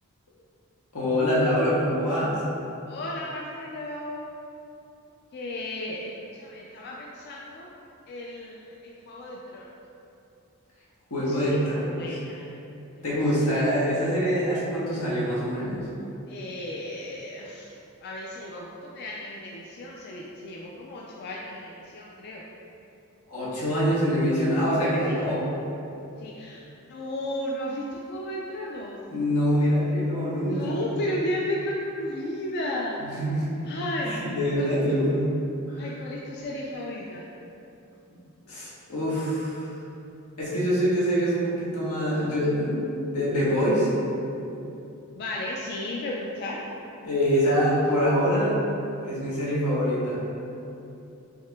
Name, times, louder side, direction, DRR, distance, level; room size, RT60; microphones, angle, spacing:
voice 1, 0.9-2.4 11.1-12.2 13.0-15.9 23.3-25.5 29.1-30.8 33.0-33.6 34.0-35.3 35.7-35.9 38.5-39.7 40.4-42.8 43.1-43.9 47.0-48.6 49.0-50.3, equal, 85° left, -7 dB, 1.1 m, -25 dB
voice 2, 2.9-4.2 5.3-7.7 8.1-9.7 11.2-12.6 16.3-17.7 18.0-22.4 25.1-25.2 26.2-29.0 30.5-33.0 33.6-34.1 34.6-34.7 35.8-37.2 45.1-46.6, left 1 dB, 50° left, -3 dB, 0.3 m, -34 dB
6.4 x 2.8 x 2.2 m, 2.8 s
head